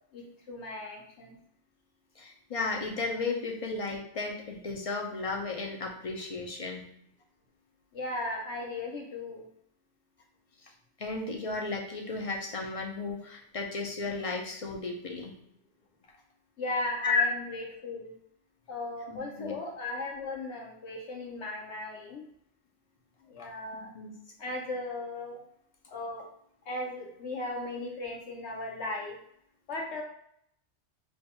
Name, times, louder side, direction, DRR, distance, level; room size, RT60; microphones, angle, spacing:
voice 1, 0.1-1.4 7.9-9.5 16.6-18.2 18.7-22.2 23.2-23.9 24.4-25.4 25.9-26.3 26.6-29.2 29.7-30.0, left 2 dB, 70° left, 0 dB, 1.1 m, -37 dB
voice 2, 2.2-6.9 10.6-10.7 11.0-15.4 17.0-17.2 19.1-19.6 23.9-24.1, left 3 dB, 50° left, 1 dB, 0.4 m, -34 dB
3.4 x 2.3 x 4.2 m, 0.71 s
omnidirectional pair, 1.2 m